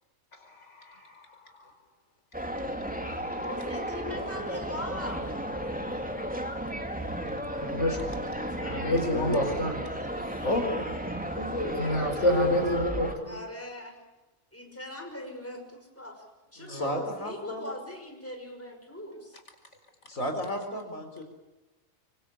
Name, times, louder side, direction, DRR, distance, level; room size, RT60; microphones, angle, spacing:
voice 1, 0.4-1.7 7.5-8.2 8.6-9.8 10.3-10.5 11.8-13.4 16.6-17.0, left 1 dB, 60° left, 6 dB, 5.4 m, -29 dB
sound 1, 2.3-13.1, right 1 dB, 5° right, 2.7 m, -34 dB
voice 2, 3.4-5.3 8.2-8.9 13.3-14.0 14.5-16.2 16.5-19.4, left 1 dB, 10° left, 3 dB, 5.7 m, -40 dB
voice 3, 9.1-9.4 10.4-10.9 11.3-11.8 16.7-17.7 20.1-21.2, left 1 dB, 75° left, 5 dB, 4.4 m, -31 dB
25.5 x 25.0 x 8.7 m, 1.1 s
omnidirectional pair, 1.4 m